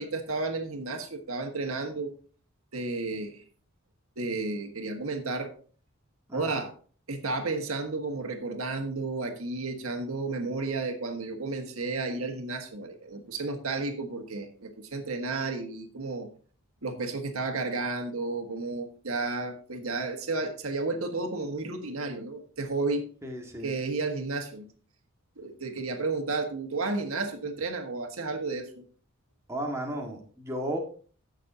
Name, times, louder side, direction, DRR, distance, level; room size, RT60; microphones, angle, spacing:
voice 1, 0.0-2.1 2.7-3.4 4.2-5.5 6.3-6.7 7.1-16.3 16.8-23.1 23.6-24.7 25.4-28.8, right 3 dB, 85° right, 4 dB, 1.6 m, -32 dB
voice 2, 6.3-6.6 23.2-23.7 29.5-30.8, right 1 dB, 15° right, 0 dB, 1.9 m, -34 dB
16.0 x 6.5 x 2.8 m, 0.43 s
head